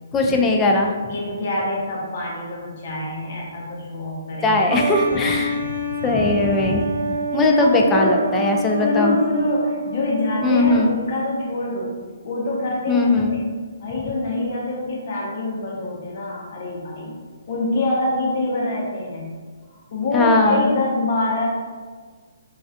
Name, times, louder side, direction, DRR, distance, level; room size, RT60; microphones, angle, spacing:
voice 1, 0.1-0.9 4.4-5.6 6.0-6.9 7.3-9.2 10.4-11.0 12.9-13.4 20.1-20.7, left 2 dB, 15° left, 1 dB, 0.3 m, -19 dB
voice 2, 1.1-4.6 5.1-5.7 6.0-6.1 7.3-8.3 8.8-12.0 12.2-13.4 13.8-17.2 17.5-19.3 19.7-21.5, left 2 dB, 50° left, -3 dB, 0.8 m, -25 dB
sound 1, 4.7-11.0, right 2 dB, 60° right, 0.4 m, -27 dB
3.1 x 2.3 x 2.6 m, 1.5 s
figure-of-eight pair, 135°, 0 cm